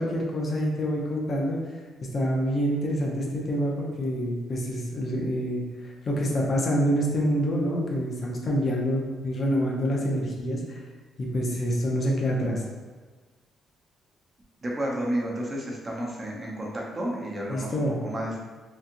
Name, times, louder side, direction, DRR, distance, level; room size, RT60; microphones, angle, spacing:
voice 1, 0.0-1.6 2.1-10.8 11.2-12.6 17.5-18.0, equal, 45° left, -2 dB, 0.6 m, -27 dB
voice 2, 14.6-18.4, right 1 dB, 30° right, -4 dB, 0.7 m, -31 dB
2.8 x 2.3 x 2.6 m, 1.4 s
cardioid pair, 90°, 0 cm